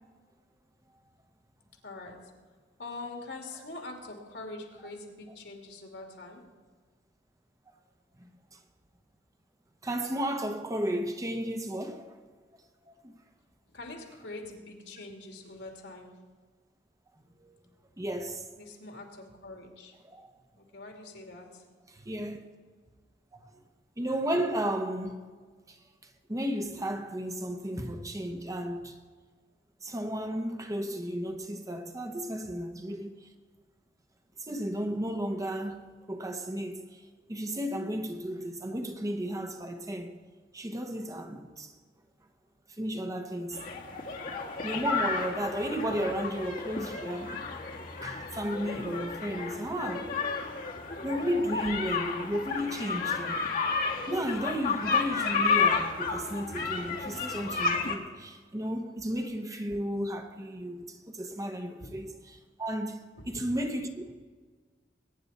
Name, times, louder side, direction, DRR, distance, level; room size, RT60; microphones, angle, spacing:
voice 1, 1.8-2.3 2.8-6.5 13.7-16.1 18.6-19.9 20.6-21.6 50.9-51.0 61.8-62.0 63.2-63.5, left 2 dB, 70° left, 2.5 m, -44 dB
voice 2, 8.2-8.6 9.8-12.2 12.8-13.1 17.4-17.6 18.0-18.4 20.0-20.3 21.9-22.4 23.3-23.4 24.0-25.2 25.7-25.8 26.3-29.0 29.8-33.3 34.4-37.0 37.3-40.2 40.5-41.7 42.8-43.6 44.6-47.4 48.0-50.2 51.0-53.6 54.1-62.1 62.6-63.9, equal, 20° right, 0.9 m, -33 dB
sound 1, 43.5-58.0, left 5 dB, 55° left, 1.4 m, -32 dB
22.0 x 9.6 x 4.2 m
head